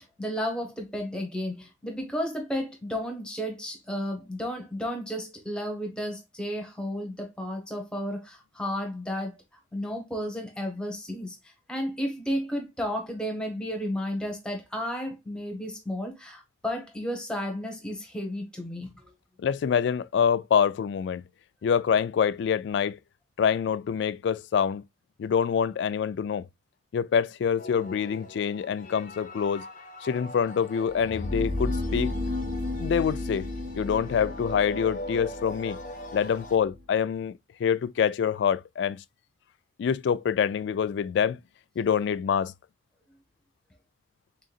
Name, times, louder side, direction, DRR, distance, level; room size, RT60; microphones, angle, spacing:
voice 1, 0.2-9.4 9.7-11.4 11.7-18.9, equal, 5° left, 1.1 m, -33 dB
voice 2, 19.4-21.2 21.6-23.0 23.4-24.8 25.2-26.5 26.9-29.6 30.0-32.1 32.8-33.5 33.8-35.8 36.1-37.3 37.6-39.0 39.8-41.4 41.8-42.5, left 7 dB, 70° left, 0.3 m, -26 dB
sound 1, 27.6-36.6, left 1 dB, 45° left, 0.8 m, -42 dB
sound 2, 30.9-36.8, left 2 dB, 65° right, 2.0 m, -33 dB
3.8 x 3.8 x 2.4 m
head